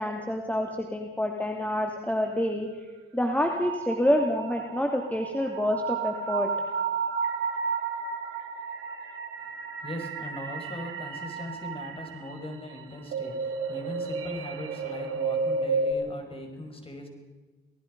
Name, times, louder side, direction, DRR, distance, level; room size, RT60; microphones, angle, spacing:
voice 1, 0.0-2.7 3.1-6.5, left 1 dB, 5° left, 2 dB, 2.6 m, -27 dB
sound 1, 3.4-15.9, right 5 dB, 75° right, 3.5 m, -32 dB
voice 2, 9.5-17.1, left 1 dB, 25° left, 4 dB, 5.8 m, -40 dB
28.5 x 18.5 x 5.4 m, 1.2 s
cardioid pair, 80°, 21 cm